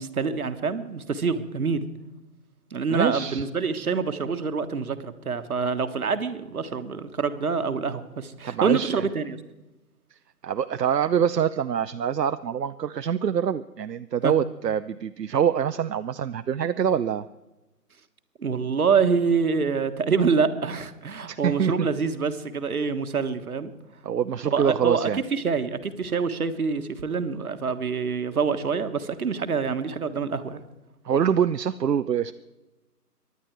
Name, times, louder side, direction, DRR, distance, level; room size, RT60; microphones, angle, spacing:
voice 1, 0.0-1.9 2.7-9.4 14.2-14.3 18.4-23.7 24.4-30.6, right 5 dB, 60° right, 10 dB, 1.5 m, -26 dB
voice 2, 2.9-3.5 8.4-9.0 10.4-17.3 21.3-21.9 24.0-25.2 31.0-32.3, right 8 dB, 75° right, 11 dB, 0.7 m, -25 dB
24.5 x 11.0 x 4.6 m, 1.0 s
figure-of-eight pair, 160°, 49 cm